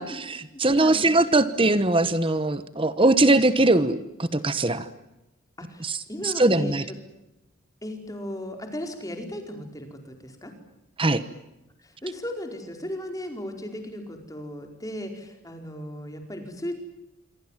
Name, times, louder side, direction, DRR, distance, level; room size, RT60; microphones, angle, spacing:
voice 1, 0.0-4.9 5.8-6.8 11.0-11.2, right 2 dB, 25° right, 13 dB, 1.1 m, -21 dB
voice 2, 0.5-1.1 5.6-7.0 7.8-10.5 11.8-16.8, left 1 dB, 15° left, 4 dB, 4.8 m, -36 dB
27.5 x 25.0 x 7.5 m, 0.95 s
head